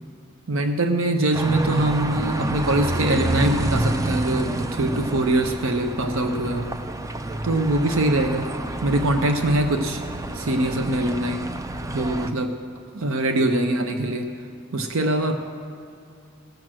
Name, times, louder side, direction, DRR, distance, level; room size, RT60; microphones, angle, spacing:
voice 1, 0.5-6.7 7.4-8.5 8.8-10.0 10.3-11.5 11.9-12.6 12.9-14.3 14.7-15.4, right 1 dB, 70° right, 6 dB, 0.7 m, -23 dB
sound 1, 1.3-12.3, right 1 dB, 15° right, 0.4 m, -28 dB
17.5 x 7.5 x 6.2 m, 2.5 s
head